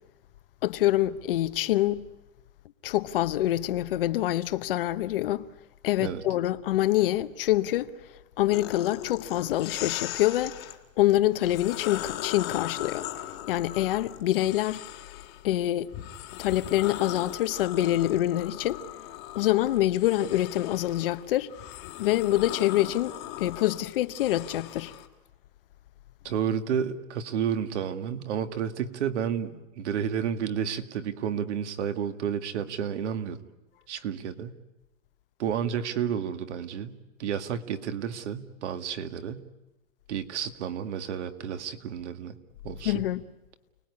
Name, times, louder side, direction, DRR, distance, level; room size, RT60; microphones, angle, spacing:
voice 1, 0.6-2.1 2.8-5.5 5.8-7.9 8.4-10.5 11.0-13.1 13.5-14.8 15.4-15.9 16.4-18.8 19.3-21.5 22.0-24.9 42.8-43.2, left 14 dB, 40° left, 1.0 m, -25 dB
sound 1, 8.5-10.8 11.4-15.4 15.9-25.1, left 13 dB, 25° left, 1.7 m, -39 dB
voice 2, 26.2-33.4 33.9-34.5 35.4-39.4 40.1-42.4 42.6-43.0, right 8 dB, 55° right, 2.2 m, -31 dB
29.5 x 19.5 x 9.8 m
hypercardioid pair, 165°, 41 cm